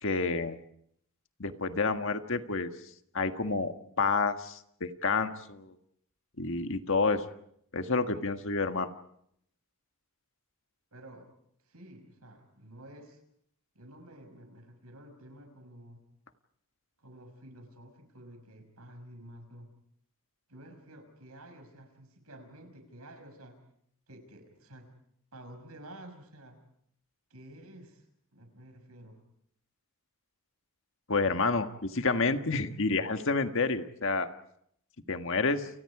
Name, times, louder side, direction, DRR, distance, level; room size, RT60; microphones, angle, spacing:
voice 1, 0.0-0.6 1.4-2.7 3.1-5.7 6.4-7.3 7.7-8.9 31.1-34.3 35.1-35.7, left 3 dB, 60° left, 7 dB, 1.6 m, -29 dB
voice 2, 10.9-11.3 11.6-13.2 13.7-16.0 17.0-19.7 20.5-23.6 24.1-24.9 25.3-26.6 27.3-28.0 28.3-29.2, right 1 dB, 80° right, 7 dB, 5.9 m, -51 dB
29.5 x 29.5 x 4.9 m, 0.70 s
head